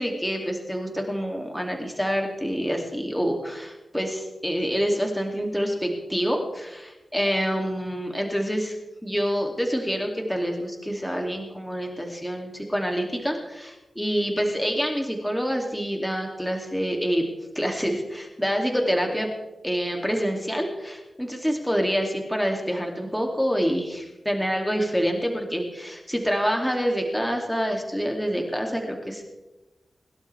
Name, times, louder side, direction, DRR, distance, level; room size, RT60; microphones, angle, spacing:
voice 1, 0.0-8.8 9.0-17.2 17.5-19.3 19.6-29.2, equal, 5° left, 2 dB, 2.5 m, -27 dB
22.0 x 12.0 x 3.4 m, 1.0 s
cardioid pair, 65°, 0 cm